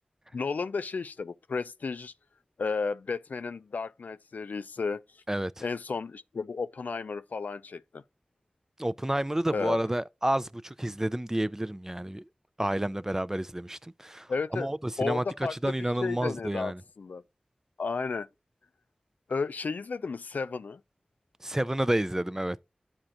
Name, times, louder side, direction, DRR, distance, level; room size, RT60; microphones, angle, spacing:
voice 1, 0.3-2.1 2.6-5.0 5.6-8.0 9.5-9.8 14.3-14.7 15.0-15.7 16.0-17.2 17.8-18.3 19.3-20.8, left 4 dB, 90° left, 0.3 m, -33 dB
voice 2, 5.3-5.6 8.8-12.2 12.6-15.2 15.5-16.8 21.4-22.6, right 1 dB, 15° right, 0.3 m, -30 dB
12.5 x 4.4 x 2.5 m
wide cardioid pair, 45°, 3 cm